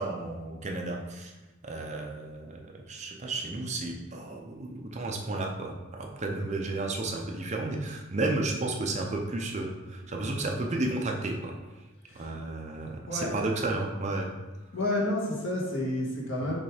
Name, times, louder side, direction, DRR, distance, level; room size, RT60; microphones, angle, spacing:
voice 1, 0.0-1.3 1.6-11.5 12.1-14.3 16.4-16.6, right 2 dB, 30° right, 1 dB, 0.6 m, -32 dB
voice 2, 13.1-13.5 14.7-16.6, left 1 dB, 55° left, -4 dB, 1.8 m, -30 dB
6.6 x 3.3 x 4.9 m, 1.1 s
head